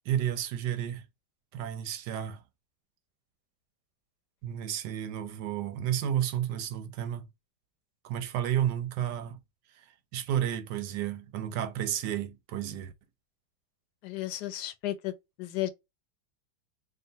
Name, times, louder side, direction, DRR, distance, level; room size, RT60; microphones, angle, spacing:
voice 1, 0.1-1.0 1.5-2.4 4.4-7.3 8.0-9.4 10.1-12.9, right 10 dB, 90° right, 1.3 m, -31 dB
voice 2, 14.0-15.1 15.4-15.7, left 14 dB, 85° left, 1.2 m, -33 dB
3.7 x 2.2 x 3.9 m
omnidirectional pair, 1.8 m